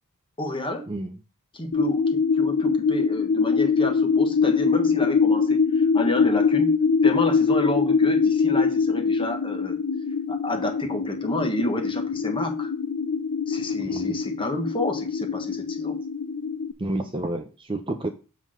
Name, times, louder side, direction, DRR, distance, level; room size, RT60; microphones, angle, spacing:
voice 1, 0.4-0.9 1.5-6.7 7.0-9.8 10.3-12.7 13.5-16.0, left 1 dB, 25° left, 4 dB, 1.3 m, -30 dB
sound 1, 1.7-16.7, left 5 dB, 60° left, 0.7 m, -23 dB
voice 2, 13.8-14.2 16.8-18.1, right 1 dB, 25° right, 6 dB, 0.6 m, -30 dB
7.2 x 4.0 x 6.3 m, 0.34 s
head